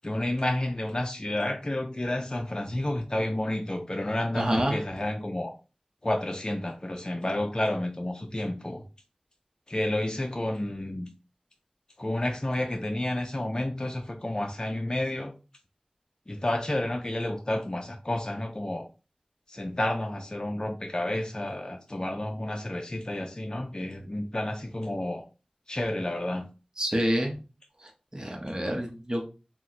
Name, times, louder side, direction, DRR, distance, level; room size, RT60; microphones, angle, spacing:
voice 1, 0.0-5.5 6.0-8.8 9.7-11.1 12.0-15.3 16.3-18.9 19.5-25.2 25.7-26.5, left 1 dB, 35° left, 3 dB, 0.4 m, -30 dB
voice 2, 4.3-4.8 26.8-27.4 28.1-29.2, equal, 30° right, 1 dB, 0.8 m, -27 dB
2.9 x 2.1 x 4.0 m, 0.32 s
wide cardioid pair, 50°, 2 cm